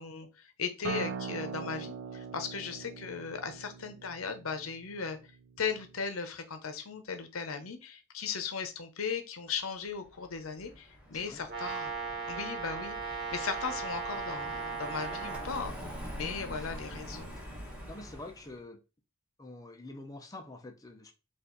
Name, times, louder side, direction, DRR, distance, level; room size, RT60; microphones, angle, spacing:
voice 1, 0.0-5.2 5.6-11.9 12.3-15.8 16.1-17.3, left 5 dB, 80° left, 0.8 m, -37 dB
Acoustic guitar, 0.8-6.0, right 5 dB, 75° right, 0.4 m, -41 dB
Car passing by, 10.0-18.6, equal, 5° right, 1.5 m, -45 dB
voice 2, 11.1-11.4 16.4-16.7 17.9-18.8 19.4-21.1, left 2 dB, 15° left, 0.6 m, -46 dB
Brass instrument, 11.5-15.5, right 4 dB, 50° right, 1.4 m, -37 dB
4.5 x 2.6 x 3.9 m
head